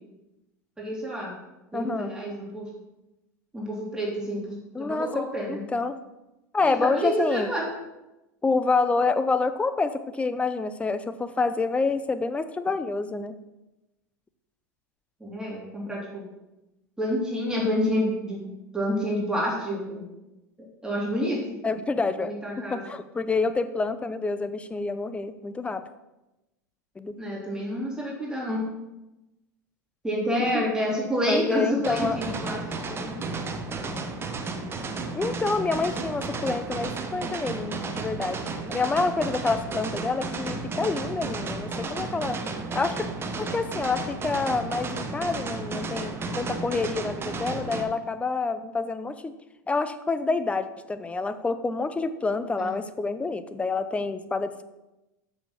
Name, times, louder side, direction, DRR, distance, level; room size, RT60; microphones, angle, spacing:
voice 1, 0.8-1.3 1.7-2.7 3.5-5.6 6.6-7.7 15.2-16.3 17.0-18.5 18.7-20.0 20.8-21.4 22.2-22.8 27.2-28.6 30.0-32.6 32.9-33.2 52.6-52.7, equal, 10° right, -5 dB, 3.4 m, -28 dB
voice 2, 1.7-2.1 4.7-6.0 6.5-7.5 8.4-13.4 21.6-22.4 22.7-25.8 27.0-27.2 30.4-30.7 31.2-32.2 35.2-38.4 38.7-42.4 42.7-43.1 43.4-49.3 49.7-54.6, left 4 dB, 15° left, 12 dB, 0.6 m, -27 dB
sound 1, 31.8-47.8, right 3 dB, 25° right, 1.1 m, -33 dB
7.1 x 6.7 x 5.8 m, 0.99 s
hypercardioid pair, 95°, 10 cm